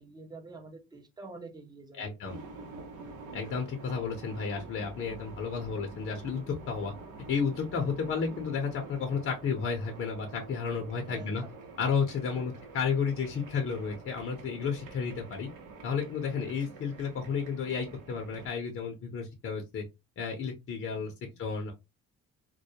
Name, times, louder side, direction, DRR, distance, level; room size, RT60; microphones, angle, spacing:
voice 1, 0.0-2.1 4.9-5.0 11.1-11.3 11.6-11.8 12.4-12.5 21.1-21.6, right 3 dB, 15° right, 4 dB, 0.6 m, -48 dB
voice 2, 2.0-2.4 3.3-6.9 7.3-11.4 11.8-15.5 15.8-19.8 20.2-21.1 21.4-21.7, left 5 dB, 45° left, 2 dB, 0.6 m, -32 dB
sound 1, 2.2-18.5, right 3 dB, 85° right, 0.8 m, -47 dB
2.2 x 2.2 x 2.7 m, 0.24 s
cardioid pair, 90°, 30 cm